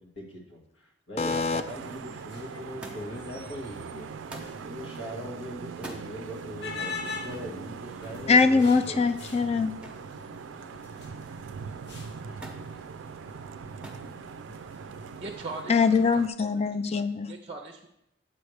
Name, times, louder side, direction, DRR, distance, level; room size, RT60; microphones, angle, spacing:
voice 1, 0.0-4.1 4.6-9.0, equal, 85° left, -1 dB, 1.8 m, -40 dB
voice 2, 1.2-1.6 8.3-9.7 15.7-17.3, left 4 dB, 35° left, 11 dB, 0.4 m, -23 dB
sound 1, 1.3-15.3, left 4 dB, 65° left, 0.9 m, -45 dB
Vehicle horn car horn honking / Traffic noise roadway noise, 1.7-16.3, right 6 dB, 85° right, 0.3 m, -42 dB
Thump thud, 2.8-3.3 4.3-4.6 5.7-6.1 7.3-7.6 9.8-10.1 10.5-11.1 12.4-12.7 13.8-14.1 15.0-15.5 16.5-16.6, right 1 dB, 5° right, 0.8 m, -44 dB
voice 3, 15.2-16.5 16.9-17.0 17.3-17.9, right 3 dB, 30° right, 3 dB, 0.5 m, -40 dB
8.1 x 3.3 x 6.3 m, 0.82 s
head